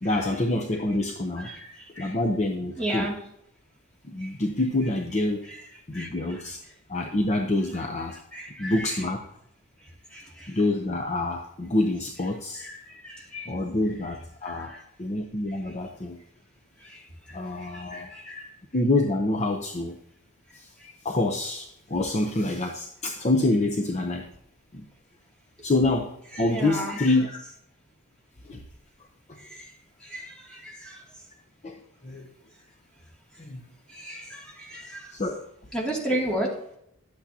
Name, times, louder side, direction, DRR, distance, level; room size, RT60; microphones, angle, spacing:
voice 1, 0.0-1.5 2.0-3.1 4.0-5.4 5.9-6.6 6.9-8.2 8.6-9.2 10.5-12.7 13.5-14.7 15.0-16.2 17.3-18.5 18.7-20.0 20.5-20.7 21.0-24.3 24.7-24.8 25.6-27.4 28.4-28.6 29.3-29.4 31.6-31.8 32.0-32.3 33.4-33.6 35.1-35.4 36.1-36.2, left 2 dB, 30° left, 2 dB, 0.7 m, -27 dB
voice 2, 1.4-2.1 2.8-3.2 4.2-4.3 5.9-6.1 8.3-8.9 10.1-10.6 12.6-13.5 14.4-14.8 16.8-17.0 17.3-18.4 26.3-27.0 29.5-29.7 30.0-31.0 33.9-35.1 35.7-36.7, right 1 dB, 5° left, -4 dB, 2.5 m, -34 dB
12.0 x 8.3 x 2.8 m, 0.76 s
head